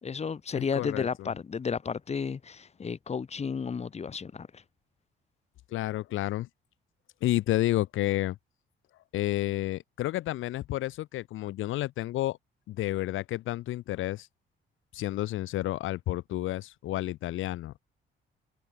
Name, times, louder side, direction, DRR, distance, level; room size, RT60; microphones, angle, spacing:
voice 1, 0.0-4.6, left 6 dB, 35° left, 1.0 m, -33 dB
voice 2, 0.5-1.3 5.7-6.5 7.2-8.4 9.1-12.4 12.7-14.3 14.9-17.8, left 15 dB, 80° left, 1.0 m, -30 dB
cardioid pair, 90°, 20 cm